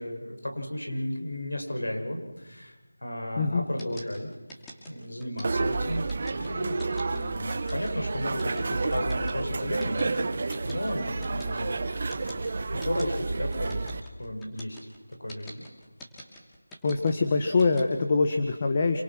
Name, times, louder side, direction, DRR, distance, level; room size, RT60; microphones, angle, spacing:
voice 1, 0.0-2.8 3.0-4.3 4.9-6.0 6.3-13.8 14.2-14.8 15.2-15.7, left 1 dB, 90° left, 3 dB, 7.0 m, -34 dB
sound 1, 3.8-17.8, equal, 5° left, 3.1 m, -45 dB
sound 2, 5.4-14.0, right 3 dB, 35° right, 1.3 m, -30 dB
voice 2, 16.8-19.0, left 4 dB, 25° left, 6 dB, 1.5 m, -24 dB
27.5 x 26.5 x 6.3 m, 1.1 s
figure-of-eight pair, 170°, 0 cm